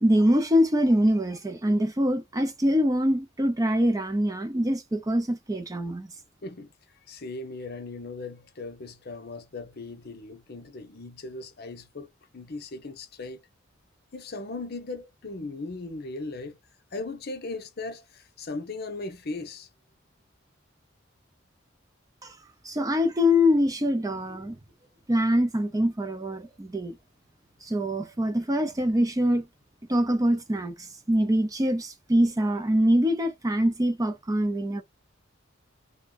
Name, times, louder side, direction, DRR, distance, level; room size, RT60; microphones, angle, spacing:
voice 1, 0.0-6.1 22.2-22.4 22.6-24.6 25.1-27.0 27.6-29.5 29.9-34.8, equal, 20° right, 0.5 m, -24 dB
voice 2, 6.4-6.7 7.1-13.4 14.1-16.6 16.9-19.7, left 3 dB, 50° left, 0.8 m, -38 dB
3.5 x 2.1 x 3.9 m
head